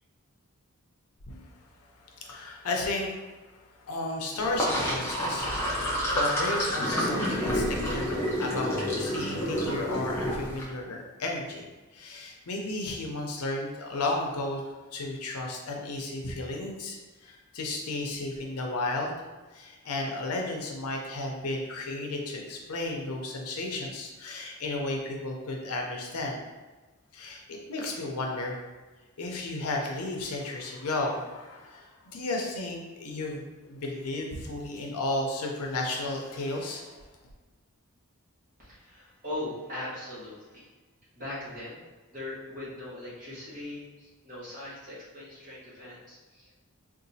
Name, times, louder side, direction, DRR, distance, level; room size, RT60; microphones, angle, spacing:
voice 1, 2.0-3.2 3.8-8.7 9.0-11.7 11.9-14.6 14.9-17.0 17.2-19.1 19.5-26.4 27.1-28.6 29.2-37.0, left 2 dB, 85° left, 0 dB, 0.6 m, -33 dB
Sink (filling or washing), 4.4-10.6, equal, 10° left, 0.6 m, -29 dB
voice 2, 38.6-40.7 41.1-41.8 42.1-46.6, left 1 dB, 40° right, -9 dB, 1.4 m, -40 dB
3.8 x 2.5 x 2.7 m, 1.2 s
head